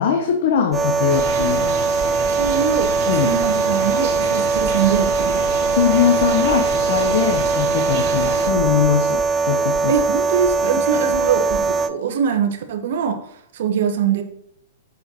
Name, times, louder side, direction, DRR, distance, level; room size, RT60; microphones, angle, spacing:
voice 1, 0.0-1.8 2.3-2.4 3.1-3.4 5.7-10.0, left 8 dB, 60° left, 4 dB, 0.9 m, -21 dB
sound 1, 0.7-11.9, right 4 dB, 15° right, 0.4 m, -21 dB
sound 2, 1.1-8.5, right 4 dB, 45° right, 2.1 m, -29 dB
voice 2, 2.4-5.5 9.9-13.2 13.5-14.2, right 7 dB, 65° right, 6 dB, 1.0 m, -22 dB
7.4 x 6.4 x 2.9 m, 0.75 s
hypercardioid pair, 130°, 0 cm